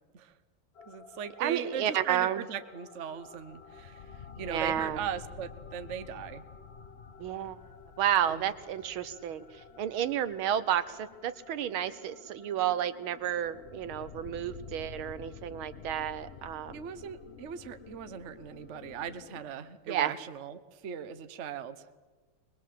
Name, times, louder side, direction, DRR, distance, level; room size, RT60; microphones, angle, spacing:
sound 1, 0.8-19.4, left 6 dB, 50° left, 0.8 m, -50 dB
voice 1, 0.9-6.5 8.3-8.4 16.7-21.8, right 8 dB, 45° right, 10 dB, 1.0 m, -39 dB
voice 2, 1.4-2.4 4.5-5.0 7.2-7.6 8.0-9.4 9.8-16.8 19.9-20.1, right 10 dB, 75° right, 13 dB, 1.7 m, -31 dB
22.5 x 21.5 x 7.6 m, 1.3 s
omnidirectional pair, 2.4 m